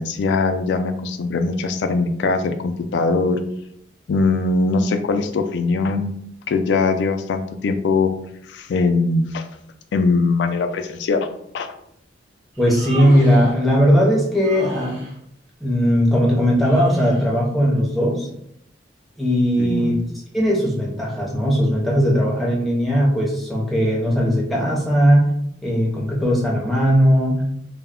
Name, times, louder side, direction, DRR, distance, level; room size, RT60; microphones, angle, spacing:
voice 1, 0.0-3.4 4.1-6.1 6.5-8.1 8.5-9.4 9.9-11.3 11.5-11.7 19.6-20.0, left 3 dB, 65° left, 7 dB, 0.3 m, -21 dB
Human voice, 12.5-13.6 14.4-15.2 16.6-17.3, right 1 dB, 90° right, 0.7 m, -33 dB
voice 2, 12.6-15.0 15.6-18.3 19.2-20.0 20.3-25.3 25.6-27.4, equal, ahead, -4 dB, 0.6 m, -18 dB
2.2 x 2.1 x 3.6 m, 0.73 s
head